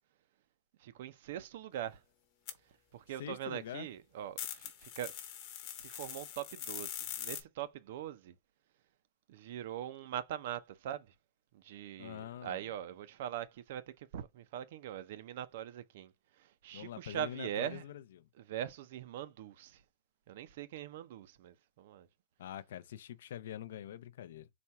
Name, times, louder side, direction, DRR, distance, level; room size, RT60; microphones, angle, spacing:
voice 1, 0.8-2.0 2.9-5.2 5.8-8.3 9.3-11.1 11.5-17.8 18.3-19.8 20.3-22.1, right 10 dB, 50° right, 0.5 m, -42 dB
sound 1, 2.5-2.6 4.4-7.4, left 10 dB, 35° left, 0.8 m, -42 dB
voice 2, 3.2-3.9 12.0-12.6 16.7-18.0 22.4-24.5, left 11 dB, 70° left, 0.4 m, -44 dB
4.2 x 2.2 x 4.6 m
supercardioid pair, 180°, 0 cm